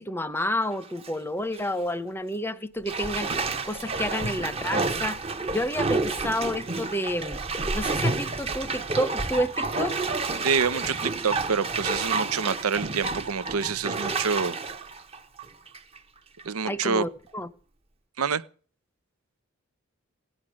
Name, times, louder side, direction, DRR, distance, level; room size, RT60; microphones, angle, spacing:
voice 1, 0.0-3.3 3.6-5.2 5.5-10.0 16.7-17.5, left 1 dB, 10° left, 0.7 m, -30 dB
Bathtub (filling or washing), 0.7-1.1 1.5-1.7 2.9-16.0 16.4-16.5, right 3 dB, 25° right, 0.9 m, -30 dB
voice 2, 10.4-14.6 16.4-17.0 18.2-18.4, right 5 dB, 90° right, 0.7 m, -27 dB
17.5 x 10.0 x 6.3 m
head